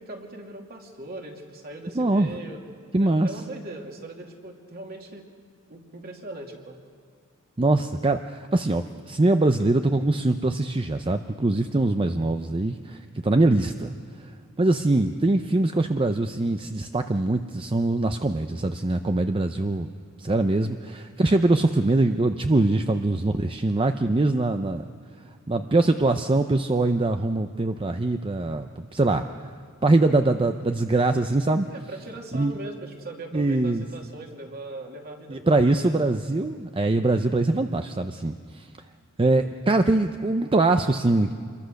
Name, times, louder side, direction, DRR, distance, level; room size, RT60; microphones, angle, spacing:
voice 1, 0.0-2.6 3.0-5.2 5.7-6.8 12.0-12.3 20.6-20.9 31.6-36.1, right 2 dB, 45° right, 1 dB, 2.7 m, -40 dB
voice 2, 1.9-2.3 2.9-3.3 7.6-13.9 14.2-14.3 14.6-19.9 20.2-24.8 25.5-29.3 29.8-31.7 32.3-32.5 33.3-33.8 35.3-38.7 39.2-41.3, right 2 dB, 25° right, 7 dB, 0.6 m, -23 dB
26.5 x 22.5 x 6.5 m, 2.3 s
head